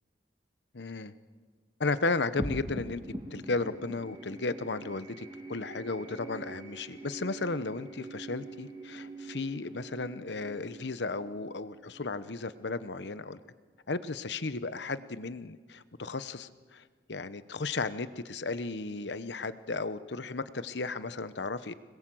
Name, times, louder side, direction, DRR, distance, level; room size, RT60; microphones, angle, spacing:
voice 1, 0.7-1.1 1.8-3.0 3.3-13.4 13.9-16.8 17.1-21.7, left 3 dB, 80° left, 13 dB, 0.9 m, -34 dB
sound 1, 2.4-13.0, right 1 dB, 25° right, 2.7 m, -44 dB
26.0 x 20.5 x 7.7 m, 1.5 s
head